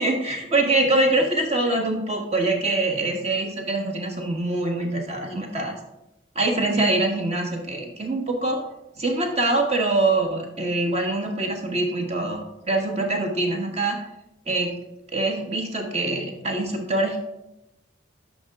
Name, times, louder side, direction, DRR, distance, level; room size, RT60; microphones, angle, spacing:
voice 1, 0.0-5.7 6.3-8.6 9.0-12.4 12.7-14.0 14.5-14.7 15.1-17.2, right 2 dB, 35° right, 2 dB, 1.3 m, -24 dB
9.0 x 5.7 x 3.6 m, 0.90 s
head